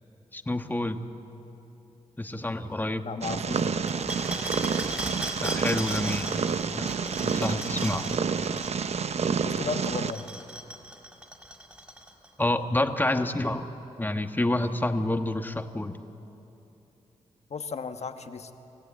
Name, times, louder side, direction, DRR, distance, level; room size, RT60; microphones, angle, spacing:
voice 1, 0.3-1.1 2.2-3.1 5.4-6.3 6.7-8.1 12.4-13.7 14.0-15.9, left 1 dB, 15° left, 7 dB, 1.4 m, -28 dB
voice 2, 3.0-3.8 9.4-10.3 17.5-18.5, left 5 dB, 60° left, 8 dB, 1.3 m, -35 dB
Purr, 3.2-10.1, right 6 dB, 55° right, 0.8 m, -29 dB
sound 1, 3.9-8.8 9.8-12.3, right 1 dB, 10° right, 4.1 m, -37 dB
27.5 x 15.0 x 8.8 m, 2.9 s
cardioid pair, 55°, 13 cm